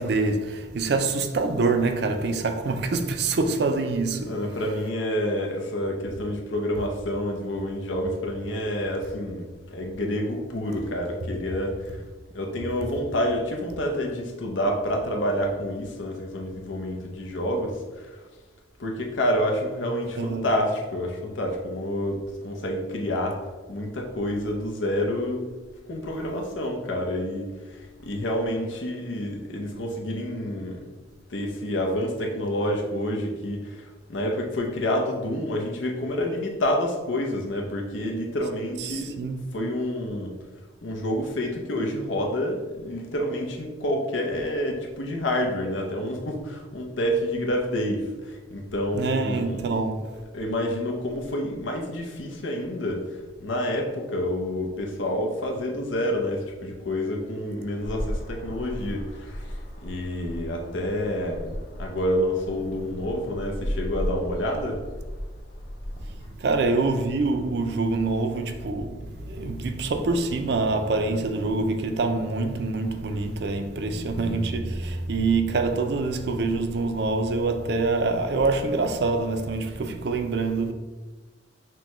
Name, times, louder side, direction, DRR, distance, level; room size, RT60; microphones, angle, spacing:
voice 1, 0.0-4.4 20.2-20.4 38.8-39.5 48.9-50.2 66.3-80.7, right 3 dB, 60° right, 0.4 m, -25 dB
voice 2, 4.2-12.0 12.3-18.2 18.8-23.4 23.7-25.5 25.9-30.8 31.3-39.2 39.5-40.4 40.8-49.6 50.3-53.1 53.4-61.5 61.8-64.8, left 1 dB, 85° left, 0.7 m, -28 dB
sound 1, 57.8-66.2, equal, 50° left, 0.8 m, -35 dB
6.0 x 2.2 x 3.0 m
head